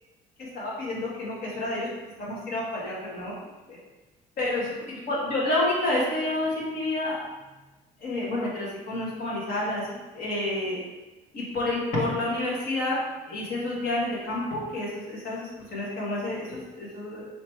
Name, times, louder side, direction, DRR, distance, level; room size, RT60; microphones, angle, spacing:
voice 1, 0.4-1.9 2.2-3.3 3.7-3.8 4.4-7.2 8.0-9.8 10.1-10.8 11.3-13.0 13.3-17.3, left 2 dB, 60° left, -5 dB, 1.4 m, -29 dB
3.3 x 3.0 x 4.4 m, 1.1 s
cardioid pair, 110°, 17 cm